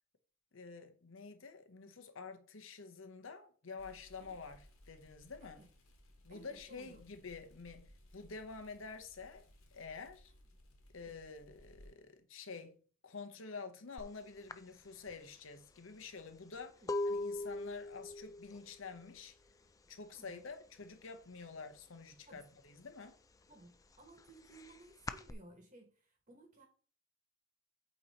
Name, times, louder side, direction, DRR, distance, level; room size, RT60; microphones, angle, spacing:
voice 1, 0.5-5.6 6.2-9.5 9.7-10.3 10.9-12.7 13.0-19.4 19.9-23.2, left 4 dB, 65° left, 0.9 m, -49 dB
sound 1, 3.8-11.9, equal, 80° left, 1.4 m, -62 dB
voice 2, 6.3-7.0 16.8-16.9 20.1-20.4 22.3-22.5 23.5-26.7, right 2 dB, 35° right, 1.2 m, -58 dB
sound 2, 14.0-14.1 14.5-20.2 20.4-20.9 21.2-22.4 22.8-25.3, left 2 dB, 15° left, 0.3 m, -42 dB
8.3 x 3.0 x 4.1 m
head